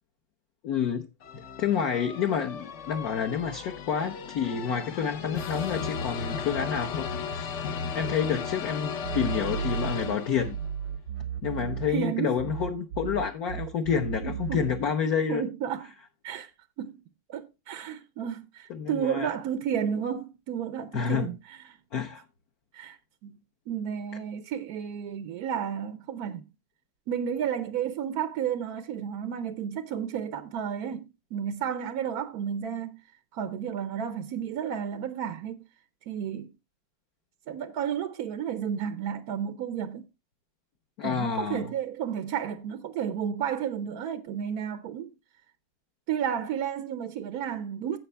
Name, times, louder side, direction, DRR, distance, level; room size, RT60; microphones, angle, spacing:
voice 1, 0.6-1.1 1.3-7.7 7.9-10.6 11.4-15.4 18.7-19.3 20.9-21.3 21.9-22.2 41.0-41.6, left 7 dB, 60° left, 1.0 m, -29 dB
sound 1, 1.2-10.7, left 6 dB, 80° left, 0.6 m, -35 dB
sound 2, 9.0-12.1 12.4-14.9, right 8 dB, 90° right, 1.8 m, -34 dB
voice 2, 11.9-12.4 14.2-14.6 15.3-15.9 16.2-16.5 16.8-17.0 17.3-21.8 22.7-23.0 23.2-23.4 23.7-26.4 27.1-33.0 33.3-35.6 36.1-36.5 37.5-40.1 41.0-45.1 46.1-48.0, right 8 dB, 75° right, 0.8 m, -32 dB
11.0 x 7.7 x 3.3 m
omnidirectional pair, 2.3 m